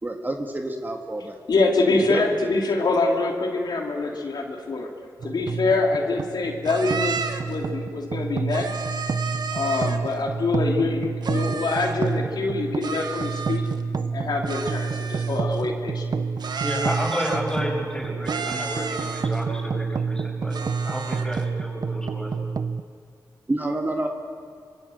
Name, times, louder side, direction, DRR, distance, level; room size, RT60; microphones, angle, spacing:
voice 1, 0.0-1.4 2.1-2.2 23.5-24.1, right 2 dB, 25° right, 3 dB, 2.1 m, -28 dB
voice 2, 1.5-4.9 5.2-7.2 7.5-8.7 9.5-13.6 14.1-16.2, left 3 dB, 75° left, 1 dB, 3.1 m, -25 dB
sound 1, 5.2-22.8, right 5 dB, 55° right, 0.7 m, -29 dB
sound 2, 6.7-7.6 8.5-10.1 11.2-12.1 12.8-13.8 14.5-15.6 16.4-17.6 18.3-19.4 20.5-21.4, right 5 dB, 70° right, 1.6 m, -32 dB
voice 3, 16.6-22.5, equal, 10° left, -1 dB, 6.9 m, -31 dB
25.5 x 22.0 x 7.9 m, 2.3 s
wide cardioid pair, 85°, 7 cm